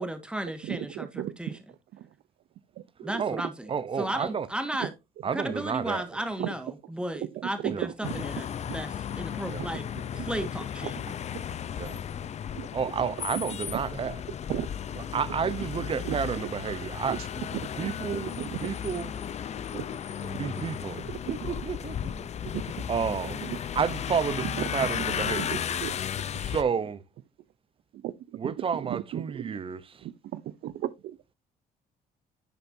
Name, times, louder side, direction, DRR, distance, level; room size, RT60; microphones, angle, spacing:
voice 1, 0.0-1.7 3.0-4.9 5.3-11.0, right 1 dB, 5° right, 1.6 m, -35 dB
voice 2, 0.7-1.3 3.0-3.1 6.4-6.5 7.6-7.7 8.0-8.1 12.5-12.7 14.5-14.7 16.0-16.2 17.1-17.2 17.8-18.7 19.7-19.8 21.1-21.5 22.5-22.6 23.5-23.6 25.4-25.5 25.8-25.9 28.0-28.1 28.4-28.5 28.9-29.6 30.3-31.3, right 13 dB, 70° right, 0.7 m, -34 dB
voice 3, 3.7-4.5 5.2-6.0 7.7-7.9 9.5-9.7 11.8-12.0 12.7-14.2 15.0-17.2 17.7-19.2 20.2-22.3 22.9-23.4 23.7-25.6 26.4-27.0 28.4-30.0, right 6 dB, 30° right, 0.8 m, -31 dB
sound 1, 8.0-26.6, left 9 dB, 40° left, 0.6 m, -35 dB
10.5 x 6.7 x 2.7 m
cardioid pair, 110°, 17 cm